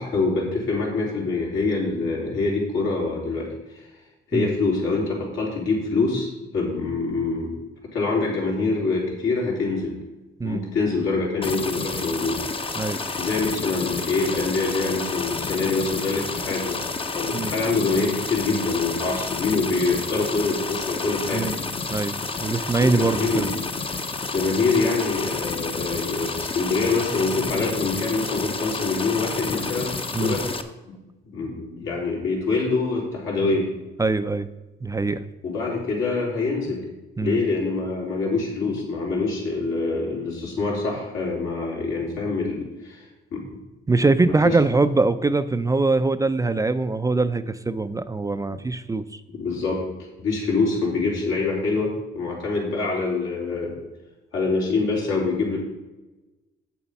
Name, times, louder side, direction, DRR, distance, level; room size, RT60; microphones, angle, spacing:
voice 1, 0.0-3.9 4.3-7.5 7.9-10.0 10.4-12.4 13.2-16.9 17.1-21.5 22.8-23.5 24.3-29.9 30.2-30.4 31.2-33.7 35.4-36.8 37.2-43.5 44.3-44.6 49.3-49.8 50.2-53.7 54.3-55.6, left 3 dB, 80° left, -3 dB, 3.7 m, -25 dB
sound 1, 11.4-30.6, left 4 dB, 25° left, 0.8 m, -30 dB
voice 2, 21.9-23.5 30.1-30.4 34.0-34.5 34.8-35.2 37.2-37.4 43.9-49.2, right 3 dB, 15° right, 11 dB, 0.4 m, -22 dB
8.0 x 7.0 x 5.3 m, 1.1 s
cardioid pair, 90°, 20 cm